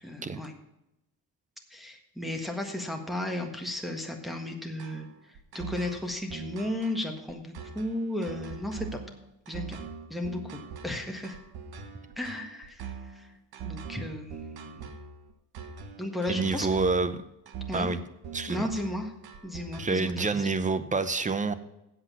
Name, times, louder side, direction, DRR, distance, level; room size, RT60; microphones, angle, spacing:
voice 1, 0.0-0.5 1.7-5.1 5.5-9.0 9.5-9.8 10.1-11.4 12.2-12.9 13.1-13.3 13.6-14.9 16.0-16.7 17.7-17.9 18.5-19.1 19.4-20.1 20.4-20.5, left 1 dB, ahead, 2 dB, 1.6 m, -34 dB
sound 1, 4.8-20.7, right 6 dB, 75° right, 1.4 m, -42 dB
voice 2, 16.3-17.2 17.7-18.0 18.3-18.7 19.8-21.5, right 4 dB, 20° right, 12 dB, 0.8 m, -27 dB
8.1 x 7.8 x 7.3 m, 0.90 s
cardioid pair, 120°, 38 cm